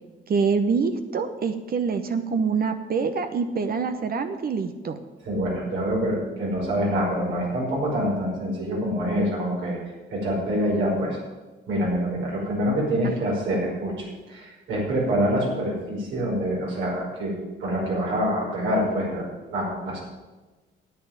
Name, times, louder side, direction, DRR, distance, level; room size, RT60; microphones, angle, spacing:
voice 1, 0.3-5.0 13.0-13.1, right 5 dB, 50° right, 8 dB, 1.0 m, -25 dB
voice 2, 5.3-9.8 10.1-11.2 11.7-17.4 17.6-20.0, equal, 80° right, -4 dB, 5.3 m, -26 dB
10.0 x 8.1 x 9.3 m, 1.2 s
cardioid pair, 90°, 20 cm